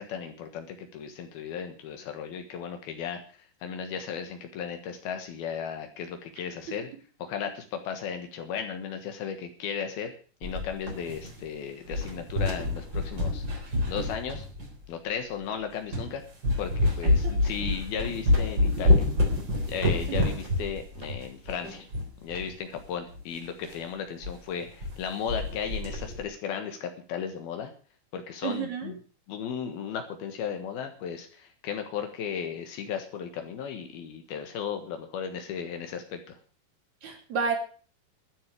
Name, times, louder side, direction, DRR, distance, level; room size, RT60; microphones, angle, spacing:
voice 1, 0.0-3.2 3.6-6.9 7.2-10.1 10.4-13.4 13.9-14.5 14.9-16.2 16.6-19.1 19.7-21.9 22.2-27.7 28.1-29.0 29.3-36.4, left 7 dB, 75° left, 6 dB, 3.3 m, -35 dB
sound 1, 10.4-11.6 11.9-14.8 15.4-15.5 15.9-16.1 16.4-22.5 22.8-22.9 23.1-23.2 23.6-23.8 24.2-24.4 24.6-25.0 25.3-26.2, left 2 dB, 30° right, 4.2 m, -27 dB
voice 2, 28.4-28.9 37.0-37.6, right 5 dB, 50° right, 3 dB, 4.1 m, -30 dB
12.5 x 11.0 x 6.5 m, 0.39 s
omnidirectional pair, 4.5 m